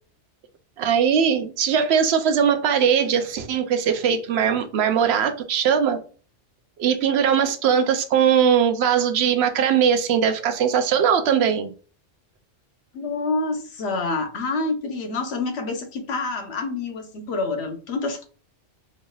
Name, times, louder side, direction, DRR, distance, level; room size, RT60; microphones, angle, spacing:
voice 1, 0.8-6.0 6.8-11.7, right 7 dB, 65° right, 0.8 m, -20 dB
voice 2, 12.9-18.2, left 3 dB, 65° left, 1.0 m, -27 dB
4.6 x 3.0 x 2.3 m
omnidirectional pair, 1.3 m